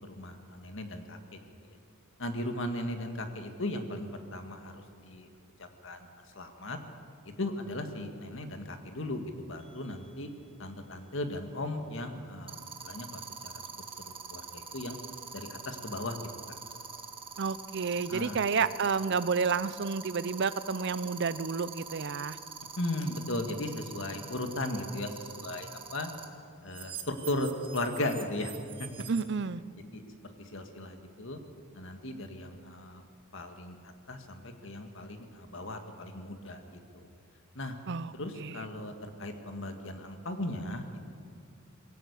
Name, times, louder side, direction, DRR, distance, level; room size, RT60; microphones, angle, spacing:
voice 1, 0.0-1.4 2.2-5.3 5.6-6.1 6.3-6.8 7.3-10.3 10.6-13.5 14.0-15.0 15.3-16.6 18.1-18.4 22.8-26.1 26.6-28.5 28.8-28.9 29.9-31.4 31.7-33.1 33.3-37.0 37.6-37.8 38.1-41.1, left 1 dB, 65° left, 6 dB, 1.9 m, -37 dB
sound 1, 9.6-9.9 12.5-26.2 26.7-29.2, right 6 dB, 25° right, 1.7 m, -43 dB
voice 2, 17.4-22.4 29.1-29.6 37.9-38.1 38.4-38.5, right 5 dB, 55° right, 16 dB, 0.6 m, -30 dB
21.0 x 17.0 x 8.4 m, 2.4 s
head